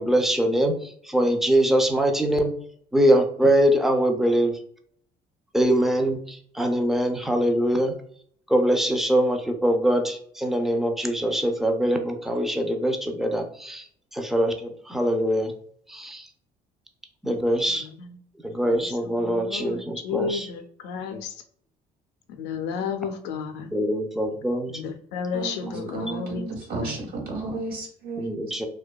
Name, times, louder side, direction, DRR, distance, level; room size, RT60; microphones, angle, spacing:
voice 1, 0.0-2.5 2.9-4.6 5.5-7.9 8.5-13.8 14.1-15.5 15.9-16.3 17.2-17.9 18.4-20.5 23.7-24.8 25.7-26.0 28.2-28.7, right 1 dB, ahead, 4 dB, 0.3 m, -23 dB
voice 2, 17.7-18.2 18.6-21.4 22.3-23.7 24.7-26.5 26.7-27.1, left 6 dB, 85° left, 5 dB, 0.4 m, -33 dB
voice 3, 25.3-28.3, right 3 dB, 65° right, 0 dB, 1.1 m, -33 dB
2.6 x 2.2 x 2.2 m, 0.62 s
cardioid pair, 110°, 17 cm